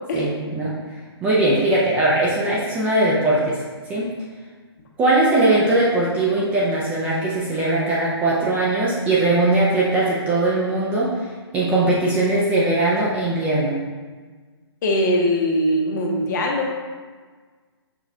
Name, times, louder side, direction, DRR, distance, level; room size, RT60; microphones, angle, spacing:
voice 1, 0.1-0.7 1.2-3.6 3.9-4.1 5.0-11.2 11.5-13.8, right 2 dB, 10° right, -7 dB, 0.4 m, -20 dB
voice 2, 14.8-16.8, equal, 45° left, 0 dB, 0.7 m, -21 dB
6.0 x 2.3 x 2.7 m, 1.4 s
hypercardioid pair, 150°, 14 cm